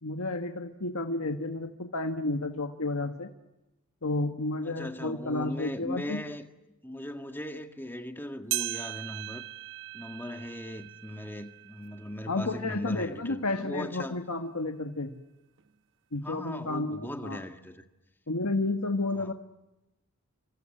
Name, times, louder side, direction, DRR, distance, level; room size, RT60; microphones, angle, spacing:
voice 1, 0.0-3.3 4.0-6.2 12.3-15.1 16.1-17.4 18.3-19.3, left 2 dB, 90° left, 1.6 m, -31 dB
voice 2, 4.6-6.4 6.8-9.4 9.9-14.2 16.2-17.8 19.2-19.3, left 1 dB, 10° left, 1.8 m, -39 dB
sound 1, 8.5-13.2 13.7-13.8 14.6-14.7 15.6-15.7, right 17 dB, 60° right, 1.0 m, -39 dB
29.0 x 26.0 x 7.9 m
head